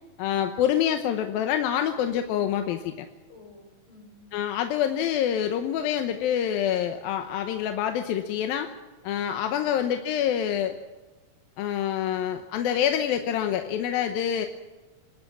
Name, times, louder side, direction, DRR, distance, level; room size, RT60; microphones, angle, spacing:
voice 1, 0.2-3.1 4.3-8.7 9.0-10.8 11.6-14.5, left 9 dB, 70° left, 6 dB, 2.5 m, -26 dB
voice 2, 3.3-4.3, left 3 dB, 45° left, 3 dB, 7.2 m, -52 dB
26.0 x 13.0 x 7.4 m, 1.2 s
omnidirectional pair, 4.9 m